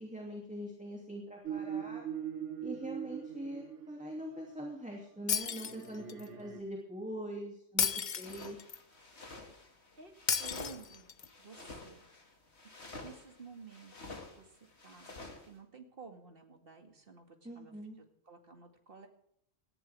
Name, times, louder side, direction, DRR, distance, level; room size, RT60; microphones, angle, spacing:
voice 1, 0.0-2.0 2.6-7.9 8.2-8.6 17.4-18.0, equal, 5° right, -1 dB, 2.7 m, -43 dB
sound 1, 1.4-4.4 5.4-6.6, right 9 dB, 90° right, 1.6 m, -41 dB
Shatter, 5.3-6.3 7.8-8.8 10.3-11.3, left 7 dB, 45° left, 0.8 m, -33 dB
sound 2, 8.2-15.5, left 2 dB, 65° left, 2.6 m, -50 dB
voice 2, 10.4-11.1 11.4-12.0 13.0-15.1 15.5-19.1, right 5 dB, 50° right, 4 dB, 2.4 m, -53 dB
18.5 x 14.5 x 3.5 m, 0.71 s
omnidirectional pair, 1.2 m